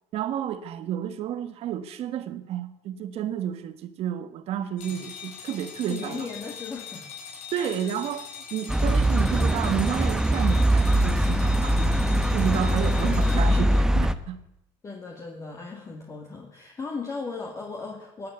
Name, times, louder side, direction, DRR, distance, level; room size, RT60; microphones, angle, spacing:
voice 1, 0.1-6.3 7.5-12.0 12.3-14.4, right 10 dB, 60° right, 1.4 m, -31 dB
sound 1, 4.8-13.8, left 6 dB, 80° left, 6.0 m, -42 dB
voice 2, 5.9-7.1 7.5-7.7 12.9-13.3 14.8-18.3, left 4 dB, 25° left, 2.2 m, -37 dB
sound 2, 8.7-14.1, right 1 dB, 5° right, 0.8 m, -22 dB
17.0 x 9.4 x 8.3 m
cardioid pair, 120°, 11 cm